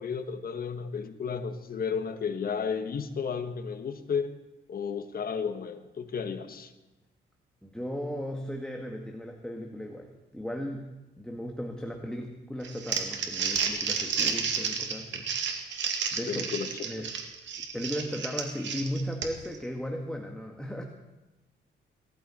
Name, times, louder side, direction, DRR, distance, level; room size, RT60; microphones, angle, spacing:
voice 1, 0.0-4.4 4.7-6.7 16.3-16.7, left 6 dB, 50° left, 8 dB, 1.5 m, -33 dB
voice 2, 7.6-10.9 11.2-15.3 16.1-16.5 16.8-17.1 17.6-20.8, equal, 5° left, 2 dB, 1.6 m, -36 dB
Crumpling crinkling, 12.6-19.6, right 6 dB, 65° right, 2.2 m, -31 dB
18.5 x 14.0 x 4.4 m, 1.1 s
cardioid pair, 90°, 20 cm